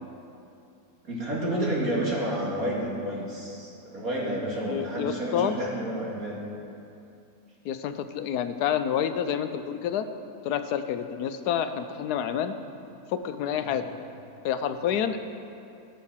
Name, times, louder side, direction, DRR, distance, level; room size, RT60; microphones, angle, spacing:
voice 1, 1.0-6.4 13.6-13.8, right 1 dB, 60° right, -4 dB, 2.8 m, -30 dB
voice 2, 4.7-5.5 7.6-10.0 10.4-12.5 13.1-13.9 14.4-15.2, left 9 dB, 90° left, 9 dB, 1.2 m, -28 dB
17.5 x 6.4 x 5.7 m, 2.7 s
omnidirectional pair, 1.6 m